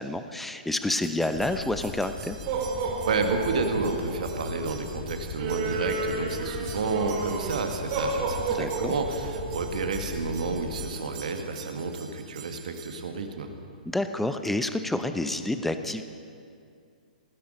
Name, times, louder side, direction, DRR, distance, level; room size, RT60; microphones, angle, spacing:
voice 1, 0.0-2.4 8.5-8.9 13.9-16.0, left 1 dB, 5° left, 9 dB, 0.8 m, -29 dB
sound 1, 1.0-12.9, right 4 dB, 35° right, 2.3 m, -34 dB
sound 2, 1.3-10.9, left 7 dB, 25° left, 1.0 m, -41 dB
voice 2, 3.1-13.5, right 4 dB, 60° right, 5 dB, 1.8 m, -30 dB
19.0 x 14.5 x 5.2 m, 2.3 s
figure-of-eight pair, 115°, 5 cm